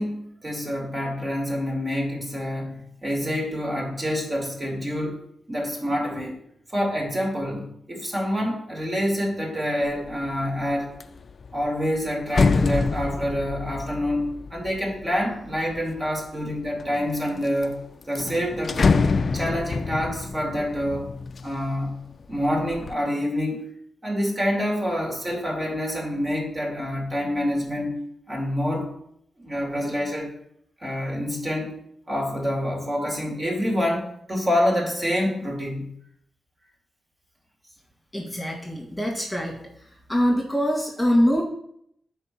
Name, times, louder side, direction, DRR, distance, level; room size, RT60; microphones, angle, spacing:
voice 1, 0.0-5.2 5.5-6.4 6.7-10.9 11.5-17.8 18.1-21.1 21.4-22.0 22.3-23.7 24.0-28.0 28.3-28.9 29.4-30.3 30.8-31.8 32.1-35.9, equal, 30° right, 0 dB, 2.6 m, -27 dB
sound 1, 9.9-10.3 10.7-16.0 16.6-17.3 17.6-17.7 18.0-21.9 22.3-22.9, left 4 dB, 55° left, 0.4 m, -26 dB
voice 2, 38.1-39.6 40.1-41.4, equal, 10° left, -2 dB, 2.1 m, -23 dB
6.6 x 4.6 x 6.1 m, 0.70 s
cardioid pair, 75°, 0 cm